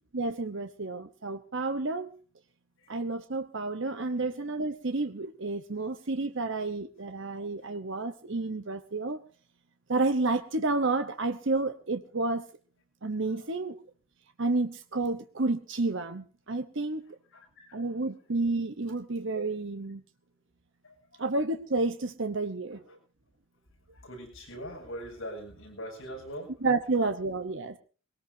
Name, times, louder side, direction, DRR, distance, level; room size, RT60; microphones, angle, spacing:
voice 1, 0.1-2.1 2.9-9.2 9.9-12.5 13.0-13.8 14.4-17.0 17.7-20.0 21.2-23.0 26.6-27.8, right 3 dB, 60° right, 1.0 m, -30 dB
voice 2, 17.3-17.8 20.8-21.2 23.9-26.5, equal, 70° left, 7.9 m, -42 dB
21.5 x 18.5 x 2.8 m
head